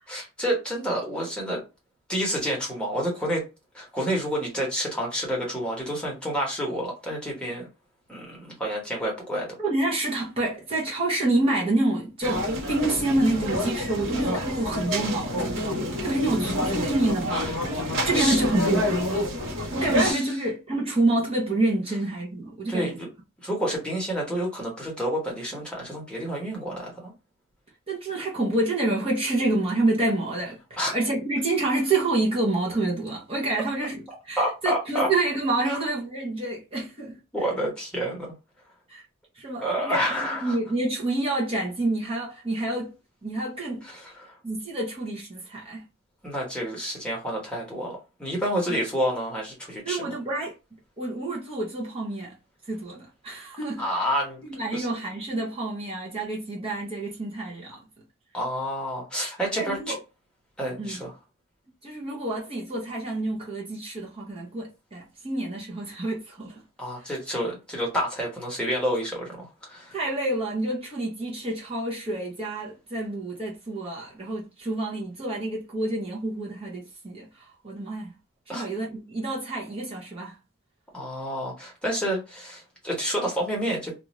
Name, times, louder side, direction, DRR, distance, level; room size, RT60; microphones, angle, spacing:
voice 1, 0.1-1.6 2.1-3.4 3.7-7.7 8.1-9.5 17.3-17.5 18.1-18.5 19.9-20.3 22.7-23.1 23.4-27.1 30.8-30.9 34.4-35.1 35.7-35.8 37.3-38.3 39.6-40.6 43.8-44.3 46.2-50.1 53.8-54.4 54.7-54.9 58.3-60.0 60.6-61.1 66.8-70.0 78.5-78.6 80.9-83.9, equal, 5° left, 1.1 m, -29 dB
voice 2, 9.6-17.4 18.0-19.2 19.7-23.0 27.9-34.0 34.2-37.2 38.9-39.0 39.4-40.0 40.4-42.9 43.2-43.9 44.4-45.8 48.7-48.8 49.8-50.5 51.0-52.4 52.7-53.8 54.4-57.8 59.5-60.0 60.8-61.1 61.8-66.6 69.9-78.1 78.5-80.4, right 2 dB, 25° right, 0.8 m, -28 dB
sound 1, 12.2-20.1, left 1 dB, 60° right, 1.1 m, -28 dB
2.5 x 2.4 x 3.1 m
head